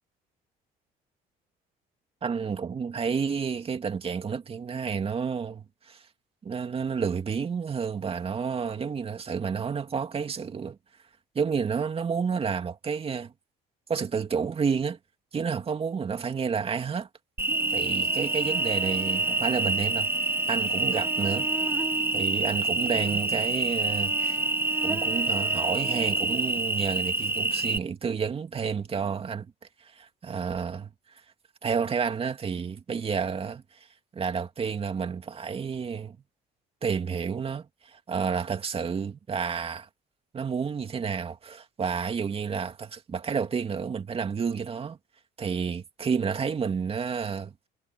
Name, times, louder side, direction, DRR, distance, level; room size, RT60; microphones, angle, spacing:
voice 1, 2.2-6.0 6.4-10.8 11.3-13.3 13.9-15.0 15.3-17.1 17.7-20.1 20.5-21.5 22.1-24.4 24.8-29.5 29.8-30.9 31.6-33.9 34.1-36.2 36.8-39.9 40.3-45.0 45.4-47.5, right 6 dB, 35° right, 2.6 m, -30 dB
Cricket, 17.4-27.8, right 2 dB, 15° right, 2.3 m, -27 dB
cardioid pair, 110°, 17 cm